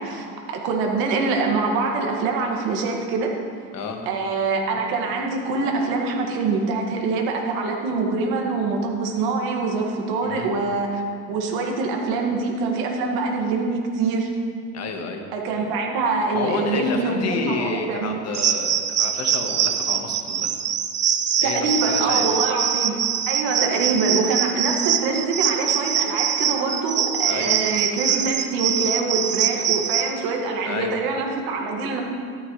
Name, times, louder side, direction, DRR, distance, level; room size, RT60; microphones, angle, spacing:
voice 1, 0.0-3.3 4.1-11.0 11.3-14.3 15.3-18.2 21.4-23.0 23.3-32.0, right 4 dB, 70° right, 1 dB, 2.1 m, -24 dB
voice 2, 3.7-4.1 10.2-10.5 14.7-15.3 15.6-15.7 16.3-20.5 21.4-22.3 27.3-27.9 30.7-30.9, left 4 dB, 40° left, 3 dB, 1.5 m, -30 dB
sound 1, 18.3-30.1, right 9 dB, 30° right, 0.5 m, -23 dB
13.5 x 12.5 x 3.3 m, 2.2 s
cardioid pair, 130°, 40 cm